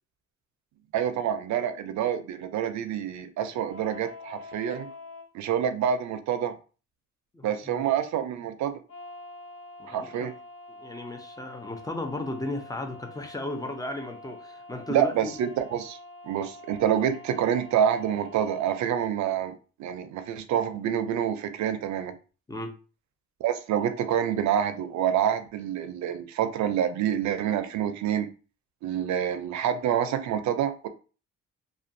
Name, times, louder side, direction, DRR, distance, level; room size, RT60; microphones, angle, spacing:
voice 1, 0.9-4.9 5.3-6.5 7.4-8.8 9.9-10.3 14.9-16.0 16.2-19.5 19.8-22.1 23.4-28.3 28.8-30.9, right 9 dB, 70° right, 10 dB, 0.5 m, -27 dB
sound 1, 3.7-5.3 8.9-18.8, left 2 dB, 50° left, 0.7 m, -46 dB
voice 2, 7.3-7.8 9.8-10.1 10.8-15.3 22.5-22.7, left 1 dB, 10° left, 4 dB, 0.5 m, -35 dB
2.5 x 2.2 x 2.6 m, 0.36 s
cardioid pair, 90°, 30 cm